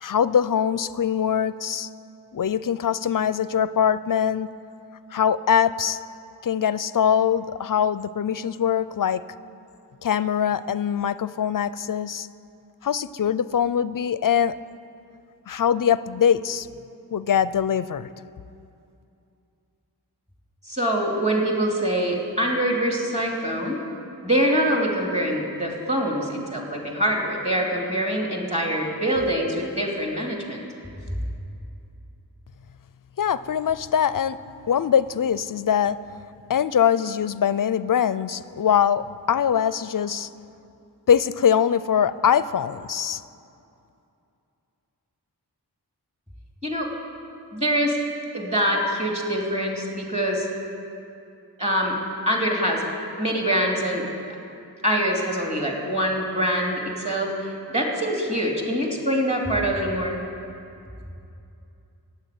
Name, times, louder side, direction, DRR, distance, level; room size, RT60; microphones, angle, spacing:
voice 1, 0.0-1.9 2.3-4.5 5.1-6.0 6.4-9.2 10.0-12.3 12.8-14.6 15.5-16.7 17.1-18.1 33.2-34.4 34.7-36.0 36.5-40.3 41.1-43.2, left 8 dB, 55° left, 16 dB, 0.5 m, -22 dB
voice 2, 20.7-23.8 24.2-30.6 46.6-46.9 47.5-48.0 48.3-50.5 51.6-52.0 52.3-52.8 53.2-54.1 54.8-57.3 57.7-60.1, equal, 15° right, 0 dB, 2.6 m, -24 dB
12.0 x 8.4 x 9.3 m, 2.7 s
wide cardioid pair, 50°, 40 cm